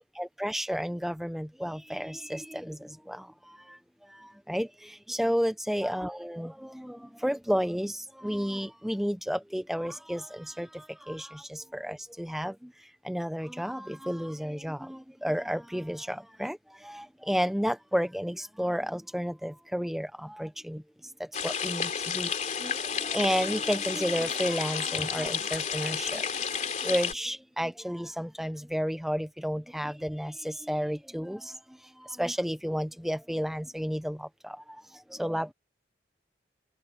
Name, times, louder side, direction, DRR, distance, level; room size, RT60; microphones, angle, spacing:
voice 1, 0.2-3.8 4.1-12.7 13.0-20.8 21.2-22.3 22.6-35.5, equal, ahead, 1.0 m, -32 dB
sound 1, 21.3-27.1, left 7 dB, 40° left, 3.4 m, -31 dB
head